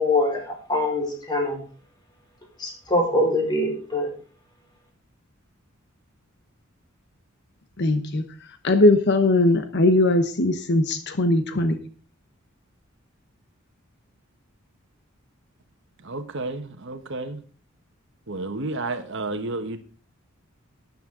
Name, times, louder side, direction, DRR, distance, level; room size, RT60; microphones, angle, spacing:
voice 1, 0.0-1.6 2.6-4.1, left 1 dB, 20° left, 4.7 m, -23 dB
voice 2, 7.8-8.2 8.6-11.8, left 2 dB, 55° left, 1.0 m, -20 dB
voice 3, 16.0-17.4 18.3-19.8, right 2 dB, 60° right, 1.3 m, -31 dB
12.5 x 10.5 x 3.8 m
head